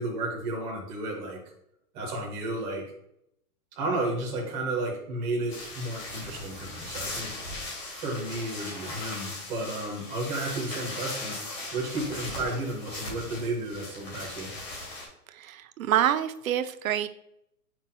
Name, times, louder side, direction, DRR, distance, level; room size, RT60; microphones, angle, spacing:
voice 1, 0.0-1.4 1.9-2.8 3.7-7.3 7.9-14.5, right 2 dB, 10° right, -3 dB, 0.9 m, -32 dB
sound 1, 5.5-15.1, left 2 dB, 40° left, 2.4 m, -38 dB
voice 2, 15.3-17.1, right 10 dB, 60° right, 11 dB, 0.6 m, -27 dB
7.0 x 6.0 x 2.2 m, 0.76 s
hypercardioid pair, 170°, 46 cm